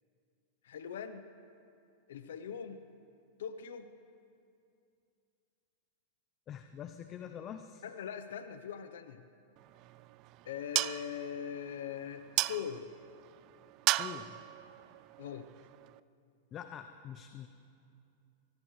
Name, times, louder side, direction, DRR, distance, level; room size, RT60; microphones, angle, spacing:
voice 1, 0.6-1.2 2.1-2.8 3.4-3.9 7.8-9.3 10.4-12.9 15.2-15.5, left 8 dB, 80° left, 10 dB, 0.7 m, -41 dB
voice 2, 6.5-7.8 13.9-14.4 16.5-17.5, left 9 dB, 35° left, 8 dB, 0.6 m, -45 dB
sound 1, 9.6-16.0, right 18 dB, 45° right, 0.3 m, -37 dB
24.0 x 19.0 x 3.2 m, 2.5 s
hypercardioid pair, 120°, 0 cm